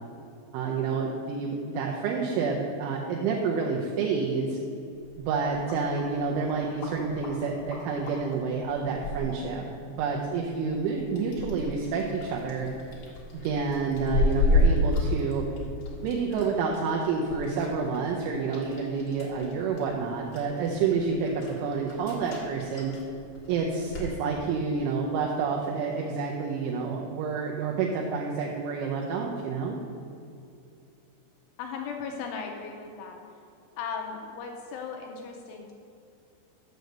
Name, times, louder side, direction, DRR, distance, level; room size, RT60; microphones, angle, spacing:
voice 1, 0.5-4.6 5.2-9.6 9.9-12.7 13.3-15.4 16.0-22.9 23.5-29.8, right 5 dB, 80° right, -1 dB, 3.0 m, -29 dB
sound 1, 4.9-24.1, left 1 dB, 70° left, 1.8 m, -33 dB
voice 2, 31.6-33.2 33.8-35.7, left 5 dB, 85° left, 2 dB, 3.0 m, -37 dB
7.9 x 6.8 x 6.5 m, 2.6 s
omnidirectional pair, 5.9 m